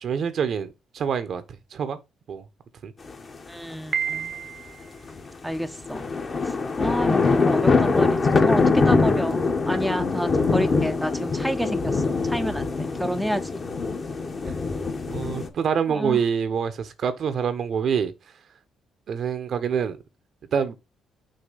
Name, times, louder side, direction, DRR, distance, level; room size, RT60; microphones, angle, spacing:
voice 1, 0.0-1.4 1.7-2.0 2.3-2.4 2.8-2.9 14.5-14.6 15.1-18.1 19.1-20.0 20.5-20.7, right 7 dB, 60° right, 1.0 m, -26 dB
sound 1, 3.1-3.2 5.1-15.5, left 4 dB, 35° left, 1.2 m, -23 dB
voice 2, 3.5-4.3 5.4-6.1 6.5-13.6 15.9-16.2, equal, ahead, 0.7 m, -30 dB
Piano, 3.9-5.0, right 7 dB, 40° right, 0.6 m, -30 dB
6.5 x 2.9 x 5.6 m
cardioid pair, 90°, 0 cm